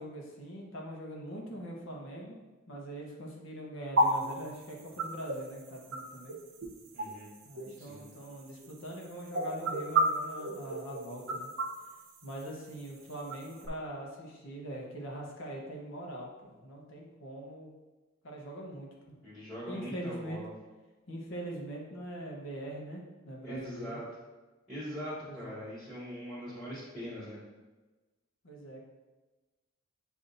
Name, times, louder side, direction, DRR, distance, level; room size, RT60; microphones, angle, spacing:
voice 1, 0.0-2.4 2.7-6.4 7.4-11.5 12.2-17.7 18.2-19.1 19.7-20.4 21.1-24.0 25.3-25.5 28.4-28.8, right 1 dB, 60° left, -1 dB, 0.9 m, -42 dB
sound 1, 4.0-13.7, right 1 dB, 70° right, 0.7 m, -34 dB
voice 2, 6.9-7.3 7.8-8.1 19.2-20.5 23.4-24.1 24.7-27.4, equal, ahead, -14 dB, 1.4 m, -42 dB
7.0 x 2.6 x 2.6 m, 1.2 s
head